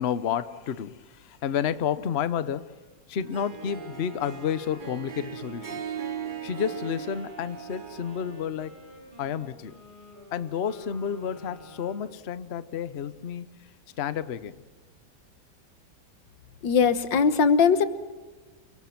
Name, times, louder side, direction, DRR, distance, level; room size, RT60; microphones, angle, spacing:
voice 1, 0.0-2.7 3.1-5.8 6.4-8.7 9.2-9.7 10.3-13.7 14.0-14.6, left 8 dB, 45° left, 14 dB, 0.9 m, -30 dB
Harp, 3.2-8.5, right 9 dB, 45° right, 0.7 m, -39 dB
Wind instrument woodwind instrument, 3.6-12.2, left 1 dB, 25° right, 7.3 m, -50 dB
voice 2, 16.6-17.9, left 6 dB, 90° left, 11 dB, 1.9 m, -20 dB
29.5 x 23.0 x 5.9 m, 1.3 s
omnidirectional pair, 1.9 m